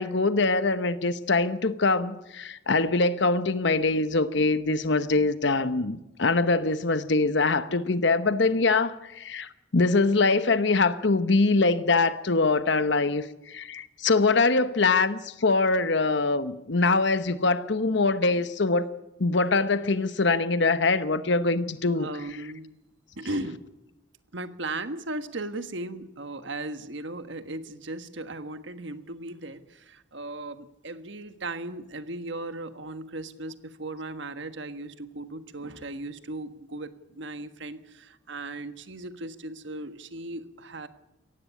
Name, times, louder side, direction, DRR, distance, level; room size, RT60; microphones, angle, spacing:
voice 1, 0.0-18.9 19.2-22.1, left 3 dB, 65° left, 12 dB, 0.9 m, -23 dB
voice 2, 21.9-22.7 23.2-23.7 24.3-40.9, right 2 dB, 70° right, 10 dB, 1.4 m, -37 dB
17.5 x 15.5 x 10.0 m, 0.91 s
head